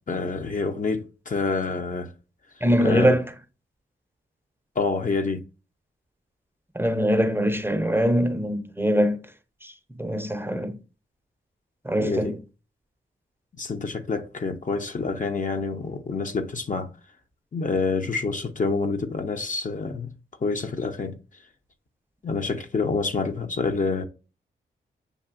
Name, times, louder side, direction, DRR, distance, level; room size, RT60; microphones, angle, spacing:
voice 1, 0.0-2.1 2.8-3.2 4.8-5.4 12.0-12.4 13.6-16.9 17.5-20.1 20.4-21.2 22.2-24.0, left 4 dB, 40° left, 0.7 m, -27 dB
voice 2, 2.6-3.3 6.7-9.2 9.6-9.7 10.0-10.8 11.8-12.3, equal, 10° right, 0.6 m, -22 dB
6.6 x 2.7 x 2.5 m
cardioid pair, 50°, 21 cm